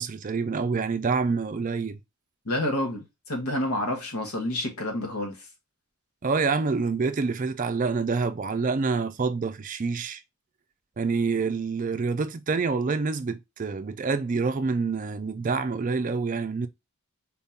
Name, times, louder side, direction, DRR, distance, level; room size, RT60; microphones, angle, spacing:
voice 1, 0.0-2.0 6.2-10.2 11.0-16.7, right 4 dB, 35° right, 0.4 m, -27 dB
voice 2, 2.4-5.4, left 1 dB, 80° left, 1.5 m, -29 dB
4.4 x 3.6 x 2.8 m
head